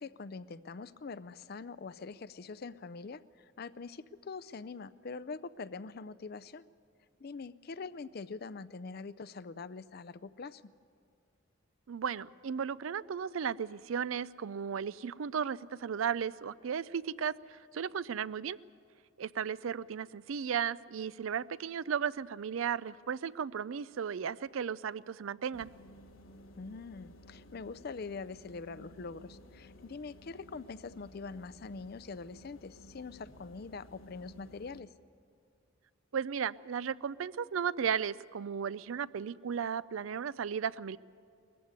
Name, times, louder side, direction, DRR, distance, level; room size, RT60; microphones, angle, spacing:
voice 1, 0.0-6.7 7.2-10.6 26.6-34.9, left 4 dB, 45° left, 15 dB, 0.5 m, -44 dB
voice 2, 11.9-18.6 19.2-25.7 36.1-41.0, right 7 dB, 75° right, 19 dB, 0.4 m, -35 dB
refrigerator hum, 25.5-34.8, left 1 dB, 80° left, 1.3 m, -55 dB
20.5 x 14.5 x 9.5 m, 2.3 s
head